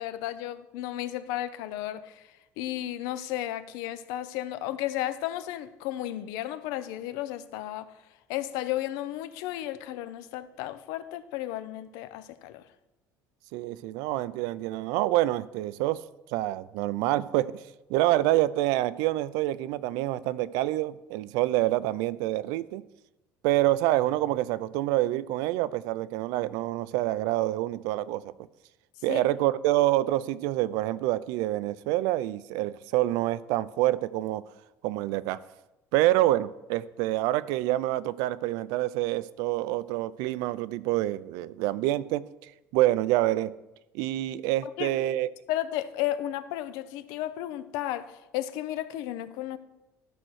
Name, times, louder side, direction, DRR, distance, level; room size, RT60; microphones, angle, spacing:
voice 1, 0.0-2.3 2.6-7.9 8.3-12.7 29.1-29.2 44.8-45.0 45.5-49.6, left 13 dB, 85° left, 0.6 m, -33 dB
voice 2, 13.5-16.0 16.3-17.6 17.9-22.8 23.4-28.3 29.0-34.4 34.8-35.4 35.9-43.5 43.9-45.3, right 15 dB, 85° right, 0.4 m, -27 dB
12.5 x 4.4 x 6.3 m
cardioid pair, 180°, 6 cm